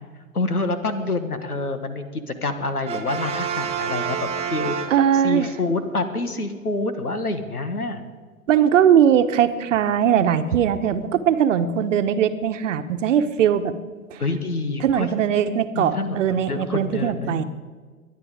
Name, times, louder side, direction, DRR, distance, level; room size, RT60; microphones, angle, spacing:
voice 1, 0.3-4.7 5.2-8.1 14.2-15.1 15.8-17.4, left 3 dB, 85° left, 10 dB, 1.6 m, -27 dB
Brass instrument, 2.8-5.5, right 7 dB, 15° right, 0.8 m, -29 dB
voice 2, 4.9-5.5 8.5-13.7 14.1-14.2 14.8-17.4, right 9 dB, 55° right, 9 dB, 1.2 m, -20 dB
23.0 x 10.5 x 5.1 m, 1.5 s
figure-of-eight pair, 105°, 44 cm